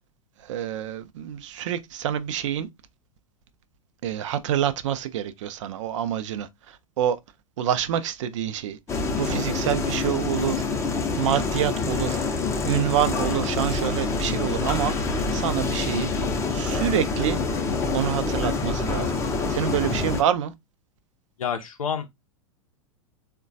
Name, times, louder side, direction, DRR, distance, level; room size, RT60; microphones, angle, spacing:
voice 1, 0.4-2.7 4.0-7.2 7.6-8.8 9.2-10.7 11.2-12.2 12.7-14.9 15.3-16.1 16.5-17.4 17.9-19.1 19.5-20.5, right 10 dB, 60° right, 0.5 m, -27 dB
sound 1, 8.9-20.2, left 3 dB, 15° left, 0.6 m, -26 dB
voice 2, 21.4-22.1, left 7 dB, 75° left, 0.5 m, -28 dB
3.6 x 2.2 x 2.5 m
figure-of-eight pair, 95°, 18 cm